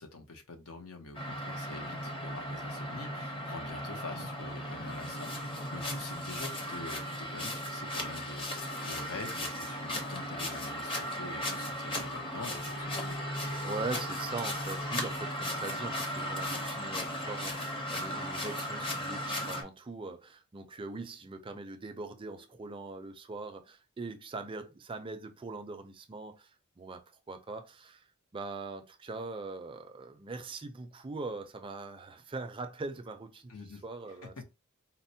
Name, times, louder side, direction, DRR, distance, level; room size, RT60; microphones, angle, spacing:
voice 1, 0.0-13.2 33.5-34.4, left 3 dB, 80° left, 0.8 m, -46 dB
sound 1, 1.1-19.6, equal, 25° left, 0.6 m, -36 dB
voice 2, 13.6-28.0 28.3-34.4, right 3 dB, 25° right, 0.4 m, -41 dB
4.1 x 2.1 x 2.7 m
head